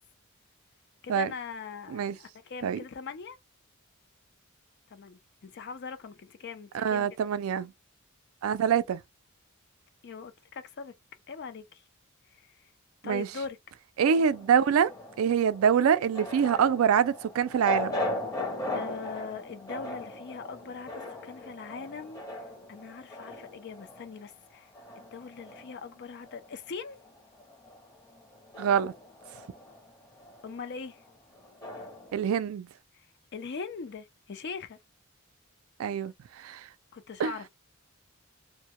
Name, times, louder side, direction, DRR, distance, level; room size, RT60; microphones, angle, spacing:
voice 1, 1.0-3.4 4.9-7.1 10.0-10.9 11.3-11.8 12.3-12.7 13.0-13.6 18.7-22.2 22.7-24.7 25.1-27.0 30.4-31.0 32.9-33.1 33.3-34.8 36.9-37.5, left 5 dB, 55° left, 0.4 m, -41 dB
voice 2, 6.7-7.7 8.4-9.0 13.0-13.3 14.0-14.9 15.2-18.0 28.6-28.9 32.1-32.7 35.8-36.7 37.2-37.3, right 7 dB, 80° right, 0.3 m, -25 dB
sound 1, 14.0-26.6 26.9-32.2, left 1 dB, 20° left, 0.7 m, -39 dB
2.1 x 2.1 x 2.8 m
head